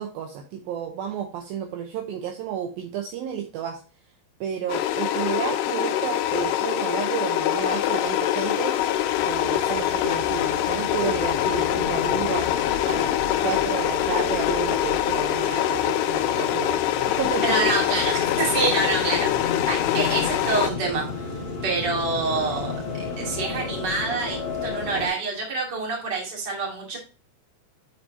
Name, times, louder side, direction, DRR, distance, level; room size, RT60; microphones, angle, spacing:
voice 1, 0.0-3.8 4.4-8.8 9.3-12.5 12.9-13.1 13.4-16.8 17.1-17.7 19.0-19.1, right 9 dB, 80° right, 3 dB, 2.2 m, -31 dB
sound 1, 4.7-20.7, left 12 dB, 85° left, 2.3 m, -24 dB
sound 2, 8.1-25.1, left 4 dB, 40° left, 2.4 m, -34 dB
voice 2, 17.4-19.3 19.7-21.3 21.6-27.0, right 3 dB, 35° right, -1 dB, 2.1 m, -27 dB
9.9 x 4.3 x 2.7 m, 0.35 s
omnidirectional pair, 5.1 m